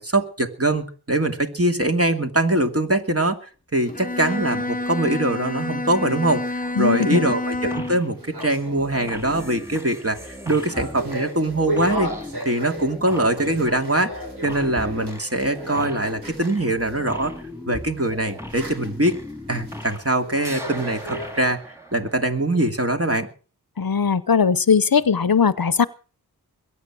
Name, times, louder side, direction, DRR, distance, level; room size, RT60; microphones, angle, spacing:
voice 1, 0.0-3.4 3.7-12.1 12.4-17.3 17.7-19.2 19.5-21.6 21.9-23.3, right 1 dB, 35° right, 4 dB, 2.6 m, -23 dB
sound 1, 3.8-17.0 17.7-21.5, equal, 80° right, 6.1 m, -36 dB
Bowed string instrument, 3.9-8.1, left 2 dB, 20° left, 0.8 m, -28 dB
voice 2, 6.8-7.4 23.8-25.9, left 6 dB, 60° left, 17 dB, 0.8 m, -19 dB
sound 2, 7.7-8.1 8.4-20.1 20.4-22.6, left 1 dB, 5° right, 3.6 m, -38 dB
22.0 x 9.5 x 6.2 m, 0.39 s
wide cardioid pair, 45°, 39 cm